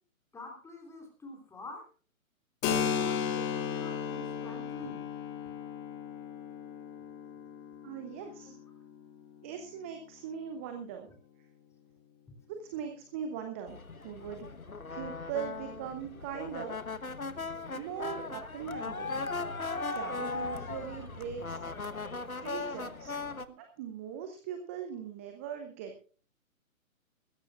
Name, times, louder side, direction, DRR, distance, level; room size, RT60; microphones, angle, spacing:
voice 1, 0.3-1.8 2.7-5.0 18.4-18.5, left 2 dB, 5° left, 3 dB, 3.3 m, -46 dB
Keyboard (musical), 2.6-10.0, left 7 dB, 20° left, 2.1 m, -36 dB
voice 2, 7.8-8.5 9.4-11.1 12.6-14.5 14.9-16.8 17.7-19.1 19.9-21.5 22.4-23.2 23.5-25.9, right 8 dB, 10° right, 6 dB, 0.6 m, -40 dB
sound 1, 13.7-23.4, left 3 dB, 85° left, 1.3 m, -38 dB
20.5 x 15.0 x 2.4 m, 0.39 s
figure-of-eight pair, 130°, 41 cm